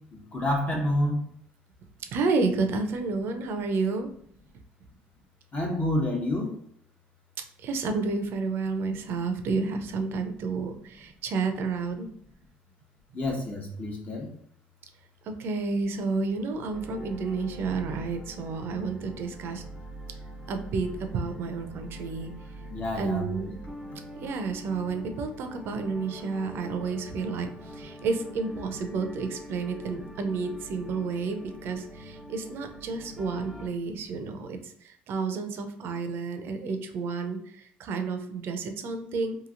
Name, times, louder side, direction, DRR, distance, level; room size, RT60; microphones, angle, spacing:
voice 1, 0.1-1.2 5.5-6.5 13.1-14.3 22.7-23.2, left 1 dB, 35° left, 0 dB, 0.8 m, -28 dB
voice 2, 2.1-4.1 7.4-12.1 15.2-19.6 20.5-22.3 22.9-23.6 24.2-39.4, right 4 dB, 60° right, 7 dB, 0.5 m, -31 dB
sound 1, 16.7-33.7, equal, 5° right, 0.5 m, -44 dB
2.9 x 2.7 x 2.5 m, 0.66 s
supercardioid pair, 80°, 4 cm